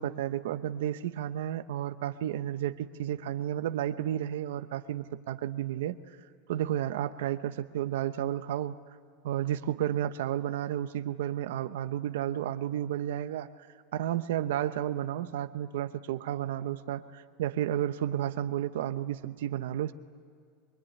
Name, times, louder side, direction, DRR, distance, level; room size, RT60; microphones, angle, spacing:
voice 1, 0.0-6.0 6.5-8.8 9.2-13.5 13.9-19.9, right 11 dB, 85° right, 9 dB, 0.9 m, -32 dB
23.5 x 23.5 x 10.0 m, 2.3 s
supercardioid pair, 155°, 0 cm